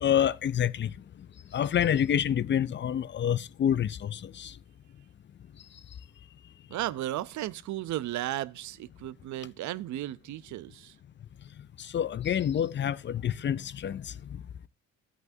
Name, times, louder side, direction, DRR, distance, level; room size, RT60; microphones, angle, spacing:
voice 1, 0.0-0.9 1.5-4.5 11.8-14.1, left 9 dB, 40° left, 0.4 m, -27 dB
voice 2, 6.7-11.0, right 14 dB, 75° right, 0.6 m, -35 dB
13.5 x 8.2 x 2.6 m
cardioid pair, 90°, 30 cm